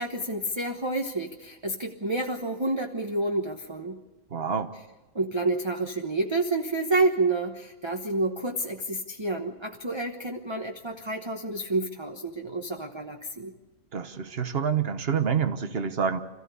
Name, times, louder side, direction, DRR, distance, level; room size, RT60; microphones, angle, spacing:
voice 1, 0.0-4.0 5.1-13.5, right 2 dB, 20° right, 3 dB, 1.1 m, -29 dB
voice 2, 4.3-4.7 13.9-16.2, right 7 dB, 45° right, 9 dB, 1.4 m, -27 dB
26.5 x 15.0 x 8.3 m, 1.1 s
omnidirectional pair, 1.4 m